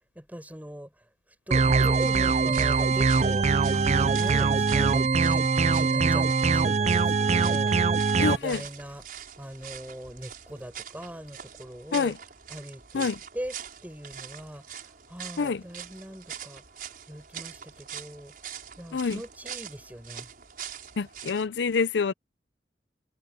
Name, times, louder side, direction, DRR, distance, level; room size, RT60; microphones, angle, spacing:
voice 1, 0.1-0.9 1.5-7.7 8.3-9.0 9.4-12.1 12.5-13.5 13.8-14.7 15.1-16.6 17.1-18.3 18.8-20.3, equal, 10° right, 6.0 m, -40 dB
sound 1, 1.5-8.4, right 4 dB, 40° right, 0.5 m, -22 dB
sound 2, 1.9-21.5, right 8 dB, 55° right, 6.0 m, -44 dB
voice 2, 8.2-8.6 11.9-12.2 12.9-13.2 15.4-15.6 18.9-19.2 21.0-22.1, left 5 dB, 80° left, 0.5 m, -26 dB
head